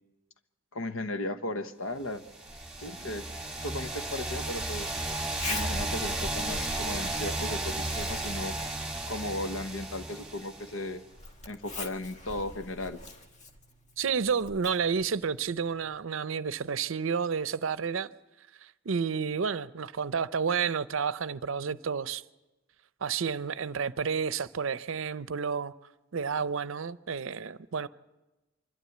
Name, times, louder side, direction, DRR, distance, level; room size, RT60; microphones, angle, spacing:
voice 1, 0.7-2.2 2.8-3.3 3.6-5.1 5.5-8.6 9.1-11.0 11.5-13.0, left 2 dB, 80° left, 1.1 m, -36 dB
sound 1, 2.3-11.0, right 2 dB, 5° right, 1.7 m, -34 dB
Zipper (clothing), 2.5-16.0, left 2 dB, 35° left, 1.3 m, -45 dB
voice 2, 14.0-18.1 18.6-22.2 23.0-25.7 26.1-27.9, right 6 dB, 70° right, 0.6 m, -30 dB
25.0 x 12.5 x 8.5 m
head